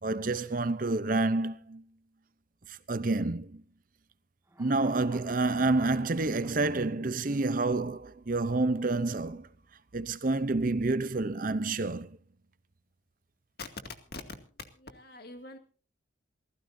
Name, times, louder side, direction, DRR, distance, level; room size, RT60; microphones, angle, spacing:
voice 1, 0.0-1.8 2.7-3.6 4.6-9.5 9.9-12.2, right 2 dB, 45° right, 0.6 m, -29 dB
sound 1, 4.5-7.9 8.2-8.3, right 1 dB, 15° right, 2.0 m, -55 dB
voice 2, 14.7-15.6, left 3 dB, 55° left, 2.2 m, -43 dB
28.0 x 15.0 x 2.7 m
head